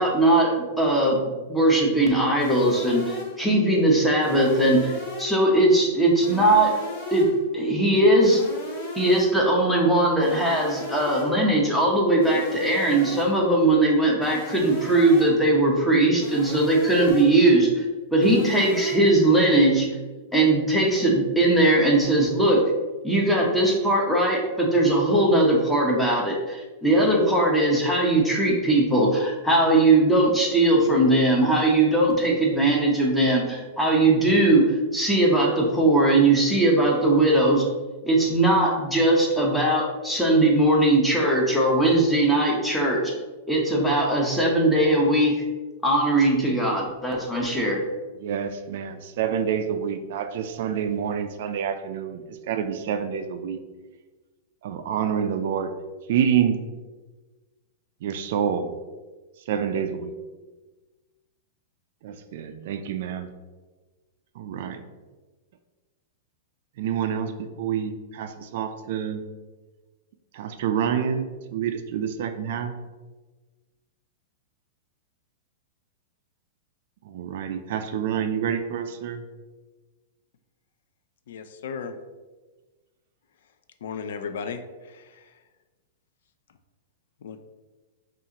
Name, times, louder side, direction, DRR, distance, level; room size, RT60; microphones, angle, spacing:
voice 1, 0.0-4.9 5.2-6.7 7.1-7.3 7.5-8.4 9.0-17.8 18.1-19.9 20.3-22.6 23.0-37.6 38.0-43.1 43.5-45.4 45.8-47.8, right 1 dB, 5° left, -3 dB, 0.8 m, -20 dB
sound 1, 2.4-3.5 4.2-5.5 6.2-7.5 8.2-9.5 10.2-11.5 12.2-13.5 14.2-15.5 16.2-17.5 18.2-18.9, left 2 dB, 55° left, 1.4 m, -36 dB
voice 2, 48.2-53.6 54.6-55.7 56.1-56.6 58.0-58.7 59.5-60.1 62.0-63.3 64.4-64.8 66.8-69.3 70.3-72.8 77.0-79.2, right 8 dB, 60° right, 8 dB, 0.4 m, -27 dB
voice 3, 81.3-81.9 83.8-84.6 87.2-87.4, left 6 dB, 75° left, 8 dB, 0.4 m, -34 dB
5.5 x 2.5 x 2.8 m, 1.3 s
supercardioid pair, 145°, 0 cm